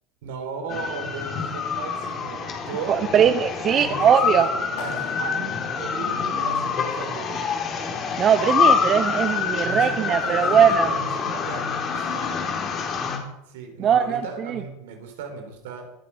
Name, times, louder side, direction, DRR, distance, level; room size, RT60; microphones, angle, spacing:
voice 1, 0.2-3.4 3.7-4.5 4.8-7.6 9.6-11.6 11.9-12.4 13.5-15.9, right 5 dB, 75° right, 5 dB, 4.7 m, -36 dB
sound 1, 0.7-13.2, left 6 dB, 40° left, 4.4 m, -26 dB
voice 2, 2.9-4.5 8.2-10.9 13.8-14.6, right 8 dB, 40° right, 10 dB, 1.0 m, -20 dB
Clapping, 4.8-6.8, left 5 dB, 60° left, 4.2 m, -41 dB
25.0 x 10.5 x 5.2 m, 0.83 s
hypercardioid pair, 90°, 0 cm